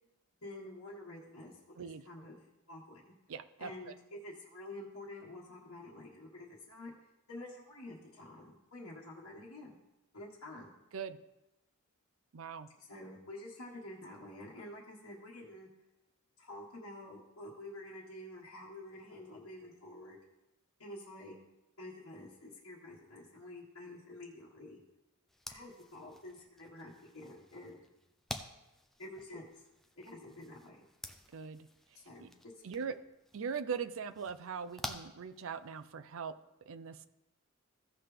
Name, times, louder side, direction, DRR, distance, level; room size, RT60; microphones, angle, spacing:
voice 1, 0.4-2.4 2.7-3.0 3.6-6.9 7.3-9.8 10.1-10.8 12.7-15.7 16.4-20.2 20.8-21.3 21.8-24.8 25.5-27.8 29.0-29.5 30.0-30.9 31.9-32.3 32.7-33.0, left 1 dB, 70° left, -7 dB, 1.6 m, -49 dB
voice 2, 3.3-3.9 10.9-11.2 12.3-12.7 31.3-31.6 32.2-32.3 32.6-32.9 33.3-36.3 36.7-37.1, right 6 dB, 65° right, 12 dB, 0.5 m, -40 dB
sound 1, 25.3-35.9, left 1 dB, ahead, 0.5 m, -50 dB
15.5 x 5.8 x 3.4 m, 0.96 s
head